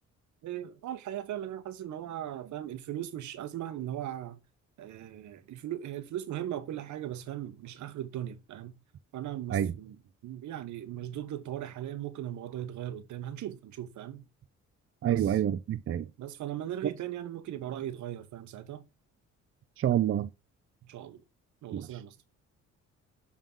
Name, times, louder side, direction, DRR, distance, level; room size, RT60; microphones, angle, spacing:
voice 1, 0.4-4.4 4.8-8.8 9.1-14.2 15.1-15.4 16.2-18.8 20.8-21.2 21.6-22.2, right 11 dB, 75° right, 0.9 m, -38 dB
voice 2, 15.0-16.0 19.8-20.3 21.7-21.9, right 10 dB, 45° right, 0.5 m, -27 dB
7.3 x 3.6 x 3.7 m
cardioid pair, 90°, 30 cm